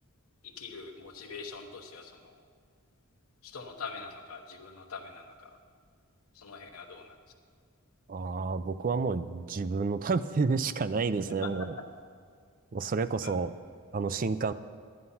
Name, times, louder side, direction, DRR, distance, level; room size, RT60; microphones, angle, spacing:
voice 1, 0.6-2.4 3.4-5.5 6.3-7.1 11.4-11.5 13.2-13.3, left 5 dB, 85° left, 2 dB, 1.0 m, -43 dB
voice 2, 8.1-11.7 12.7-13.5 13.9-14.5, right 4 dB, 40° right, 14 dB, 0.4 m, -30 dB
11.0 x 9.6 x 5.6 m, 2.1 s
head